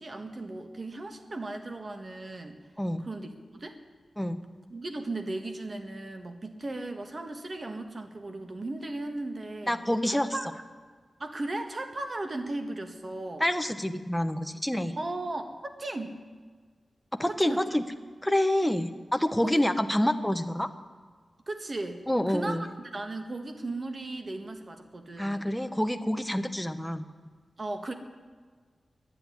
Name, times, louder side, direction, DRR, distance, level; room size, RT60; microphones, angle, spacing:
voice 1, 0.0-2.6 3.0-3.8 4.7-9.8 10.1-10.5 11.2-13.4 15.0-16.2 17.3-17.6 19.4-19.6 21.5-25.5 27.6-27.9, right 2 dB, 40° right, 6 dB, 1.5 m, -36 dB
voice 2, 9.7-10.3 13.4-14.9 17.1-17.8 18.2-20.7 22.1-22.6 25.2-27.0, left 1 dB, 5° left, 8 dB, 0.9 m, -27 dB
11.5 x 10.5 x 9.8 m, 1.5 s
wide cardioid pair, 90°, 0 cm